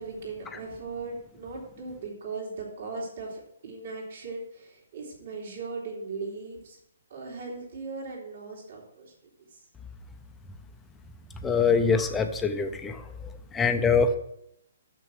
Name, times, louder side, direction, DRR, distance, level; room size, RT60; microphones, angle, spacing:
voice 1, 0.0-6.8 7.1-9.1, right 3 dB, 50° right, -2 dB, 2.9 m, -38 dB
voice 2, 11.4-13.0 13.5-14.2, left 5 dB, 10° left, 7 dB, 0.5 m, -24 dB
6.9 x 6.2 x 6.2 m, 0.77 s
hypercardioid pair, 170°, 0 cm